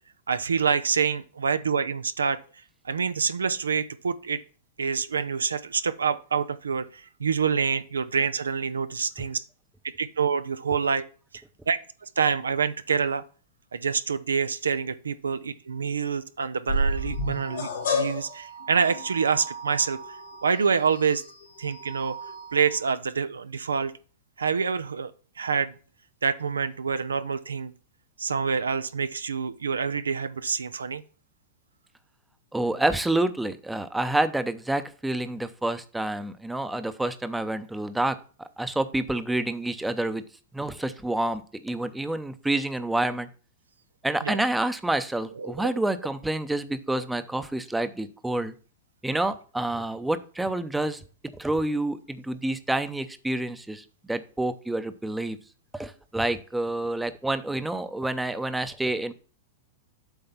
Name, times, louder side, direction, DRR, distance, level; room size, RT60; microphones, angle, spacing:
voice 1, 0.3-2.4 2.8-4.4 4.8-9.4 10.0-11.0 11.7-13.2 13.7-20.2 20.4-21.2 21.6-22.2 22.5-23.9 24.4-25.1 25.4-25.7 26.2-27.7 28.2-31.0 44.2-44.4 45.4-45.7, right 6 dB, 85° right, 13 dB, 0.4 m, -27 dB
sound 1, 16.7-22.8, left 1 dB, 75° left, 2.5 m, -32 dB
voice 2, 32.5-40.2 40.5-43.3 44.0-48.5 49.0-51.0 51.4-55.4 55.7-59.1, right 1 dB, 5° right, 11 dB, 0.6 m, -28 dB
8.0 x 3.2 x 5.6 m, 0.39 s
hypercardioid pair, 105°, 0 cm